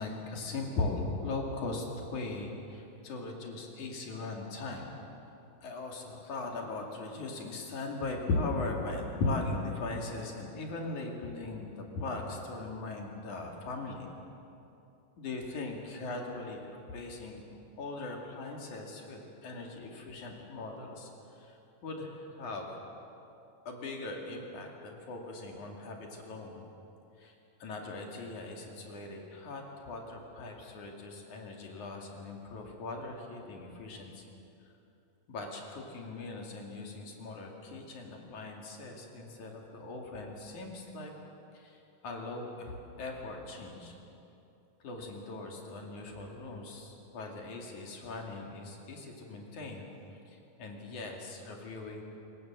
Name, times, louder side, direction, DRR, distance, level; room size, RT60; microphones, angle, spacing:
voice 1, 0.0-1.9 2.1-4.9 5.6-14.1 15.2-17.4 17.8-21.1 21.4-22.7 23.7-26.6 27.2-27.3 27.6-34.3 35.3-41.1 41.5-41.8 42.0-43.9 44.8-49.8 50.6-52.0, left 3 dB, 55° left, 1 dB, 3.7 m, -39 dB
26.0 x 18.0 x 7.7 m, 2.8 s
omnidirectional pair, 4.4 m